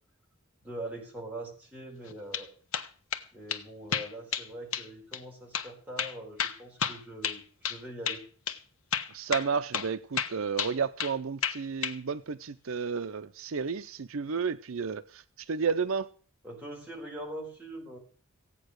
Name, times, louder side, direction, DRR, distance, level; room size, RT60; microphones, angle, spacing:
voice 1, 0.6-2.5 3.3-8.2 16.4-18.0, right 1 dB, 5° right, 4.6 m, -42 dB
sound 1, 2.1-2.5 2.7-3.2 3.5-3.6 3.9-4.5 4.7-4.9 5.1-5.2 5.5-5.7 6.0-7.8 8.1-8.2 8.5-8.6 8.9-9.5 9.7-9.9 10.2-11.2 11.4-12.0, left 7 dB, 75° left, 1.1 m, -31 dB
voice 2, 9.1-16.1, right 5 dB, 65° right, 0.6 m, -32 dB
16.0 x 8.9 x 6.5 m
head